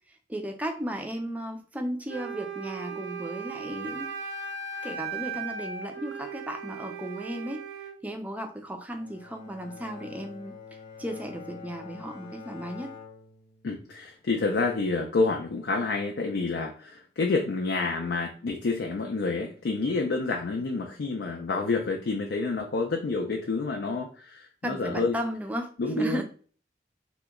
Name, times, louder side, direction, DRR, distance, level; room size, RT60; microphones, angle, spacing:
voice 1, 0.3-4.1 4.8-7.6 8.0-10.5 11.0-12.9 24.6-26.2, equal, 10° right, 4 dB, 0.4 m, -35 dB
Wind instrument woodwind instrument, 2.1-8.0, right 5 dB, 85° right, 0.6 m, -37 dB
Bowed string instrument, 8.9-14.1, left 5 dB, 30° left, 0.6 m, -46 dB
voice 2, 13.6-25.2 25.8-26.2, left 3 dB, 70° left, 2 dB, 0.4 m, -28 dB
2.8 x 2.2 x 3.5 m, 0.41 s
head